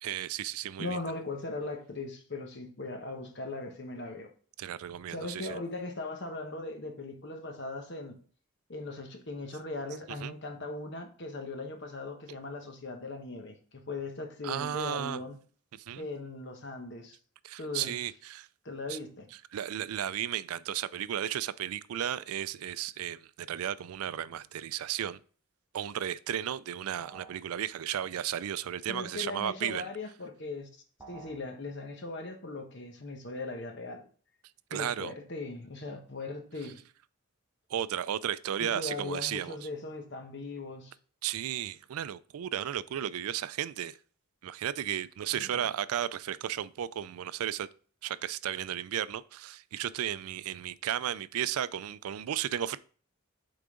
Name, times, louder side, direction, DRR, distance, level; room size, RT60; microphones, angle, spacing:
voice 1, 0.0-1.0 4.6-5.6 10.2-10.3 14.4-15.2 15.7-16.1 17.4-18.5 18.9-19.0 19.5-25.2 25.7-29.9 34.7-35.1 37.7-39.6 41.2-44.0 44.4-47.7 48.0-52.8, right 10 dB, 85° right, 0.4 m, -34 dB
voice 2, 0.8-4.3 5.1-8.2 8.7-15.4 16.0-17.2 17.6-18.0 18.6-19.3 28.9-30.7 31.1-34.0 34.7-36.8 38.6-40.9 45.3-45.6, left 2 dB, 50° left, 1.1 m, -39 dB
sound 1, 27.0-27.5 31.0-31.5, right 4 dB, 10° right, 1.2 m, -50 dB
8.5 x 3.9 x 3.7 m
head